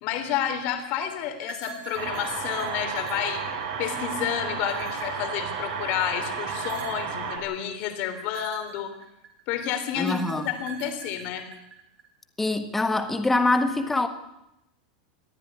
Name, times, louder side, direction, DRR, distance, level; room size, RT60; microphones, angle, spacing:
voice 1, 0.0-8.9 9.5-11.4, left 9 dB, 35° left, 7 dB, 3.3 m, -30 dB
sound 1, 1.4-4.1 4.6-5.9 6.5-7.2 8.2-9.4 10.0-12.1, right 7 dB, 20° right, 3.3 m, -44 dB
sound 2, 1.9-7.4, right 5 dB, 65° right, 6.9 m, -32 dB
voice 2, 9.9-10.5 12.4-14.1, left 2 dB, 5° left, 8 dB, 1.5 m, -24 dB
22.0 x 14.5 x 9.9 m, 0.86 s
supercardioid pair, 175°, 4 cm